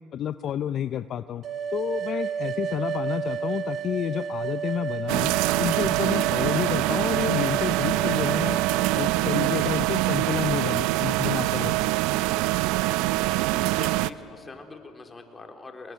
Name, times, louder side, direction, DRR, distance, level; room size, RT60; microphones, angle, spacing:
voice 1, 0.1-1.4 1.7-5.3 5.6-8.6 8.9-11.9, left 9 dB, 50° left, 13 dB, 0.6 m, -30 dB
sound 1, 1.4-9.0, right 7 dB, 50° right, 0.9 m, -31 dB
sound 2, 5.1-14.1, right 17 dB, 80° right, 0.6 m, -24 dB
voice 2, 13.0-15.9, left 3 dB, 25° left, 4 dB, 3.5 m, -44 dB
26.0 x 21.5 x 9.3 m, 2.6 s
supercardioid pair, 90°, 0 cm